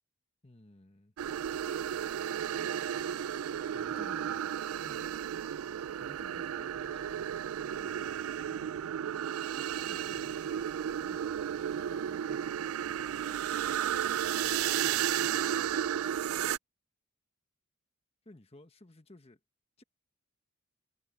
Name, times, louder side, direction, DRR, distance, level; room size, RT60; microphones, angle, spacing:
voice 1, 0.4-1.1 2.5-2.7 3.7-4.4 4.8-5.1 6.0-9.2 9.5-13.7 14.2-15.9 18.2-19.4 19.8-19.9, left 1 dB, 30° left, 1.3 m, -56 dB
sound 1, 1.2-16.6, right 10 dB, 85° right, 0.3 m, -33 dB
head